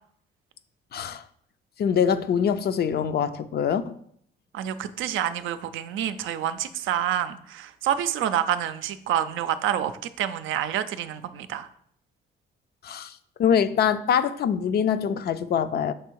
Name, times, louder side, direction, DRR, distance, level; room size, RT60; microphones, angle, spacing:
voice 1, 0.9-1.2 1.8-4.0 12.8-13.1 13.4-15.9, left 8 dB, 55° left, 0.5 m, -24 dB
voice 2, 4.5-11.7, right 10 dB, 80° right, 0.5 m, -28 dB
6.3 x 3.4 x 4.6 m
cardioid pair, 90°, 20 cm